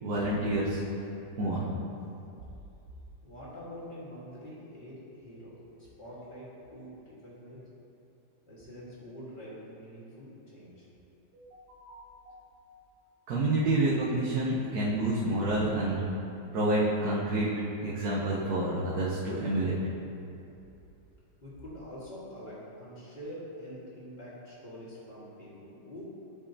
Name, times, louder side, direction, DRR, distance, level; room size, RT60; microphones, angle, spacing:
voice 1, 0.0-0.8 1.4-1.6 11.3-12.4 13.3-16.0 16.5-17.5 17.8-19.8, right 1 dB, 70° right, -7 dB, 1.5 m, -29 dB
voice 2, 3.2-7.6 8.5-10.9 21.4-26.0, equal, 30° left, -8 dB, 1.7 m, -45 dB
11.0 x 5.2 x 2.8 m, 2.8 s
omnidirectional pair, 1.7 m